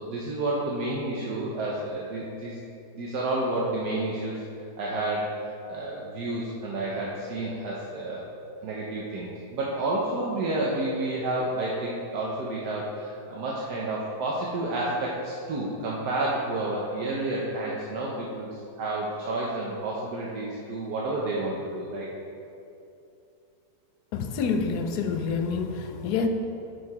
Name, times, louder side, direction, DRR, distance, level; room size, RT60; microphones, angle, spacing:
voice 1, 0.0-2.6 2.9-4.4 4.8-5.3 5.7-8.3 8.6-22.1, right 2 dB, 75° right, -4 dB, 1.4 m, -30 dB
voice 2, 24.1-26.3, left 5 dB, 75° left, 6 dB, 1.2 m, -27 dB
9.5 x 4.6 x 4.8 m, 2.6 s
omnidirectional pair, 1.8 m